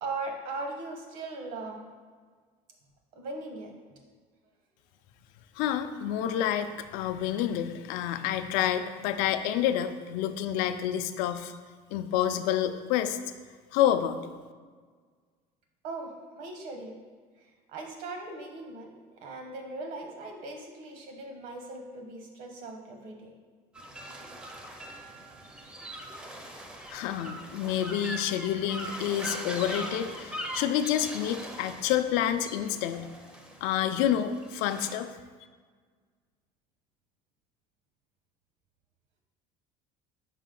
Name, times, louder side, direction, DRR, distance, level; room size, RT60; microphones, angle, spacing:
voice 1, 0.0-1.8 3.1-3.7 15.8-17.0 17.7-18.9 19.2-23.3, right 3 dB, 65° right, 3 dB, 1.0 m, -39 dB
voice 2, 5.6-11.5 11.9-13.2 13.7-14.2 26.9-33.1 33.6-35.1, left 10 dB, 80° left, 9 dB, 0.4 m, -28 dB
sound 1, 23.7-35.0, equal, 5° right, 0.4 m, -41 dB
5.1 x 5.0 x 3.8 m, 1.6 s
cardioid pair, 165°, 15 cm